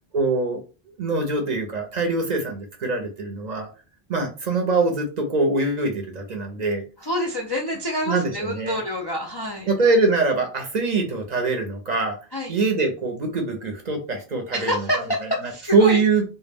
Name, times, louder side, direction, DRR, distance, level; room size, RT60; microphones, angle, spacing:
voice 1, 0.1-0.6 1.0-3.7 4.1-6.8 8.1-8.8 9.7-12.2 12.5-15.0 15.7-16.3, right 3 dB, 50° right, 3 dB, 0.6 m, -23 dB
voice 2, 7.0-9.7 12.3-12.6 14.5-16.0, left 1 dB, 45° left, -1 dB, 0.3 m, -27 dB
2.1 x 2.1 x 3.3 m, 0.35 s
omnidirectional pair, 1.0 m